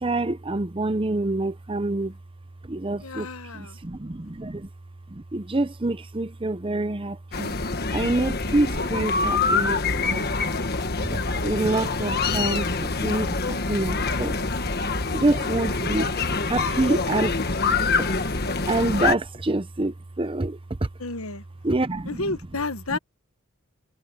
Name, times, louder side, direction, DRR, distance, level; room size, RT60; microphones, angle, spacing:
voice 1, 0.0-2.1 2.6-3.3 3.5-4.7 5.1-7.5 7.9-10.3 11.4-14.4 15.1-17.4 17.8-18.2 18.7-20.6 21.6-22.2 22.9-23.0, right 2 dB, 25° right, 0.7 m, -26 dB
voice 2, 3.0-3.8 21.0-21.4 22.0-23.0, left 3 dB, 75° left, 1.4 m, -31 dB
sound 1, 7.3-19.2, left 4 dB, 45° left, 1.5 m, -25 dB
head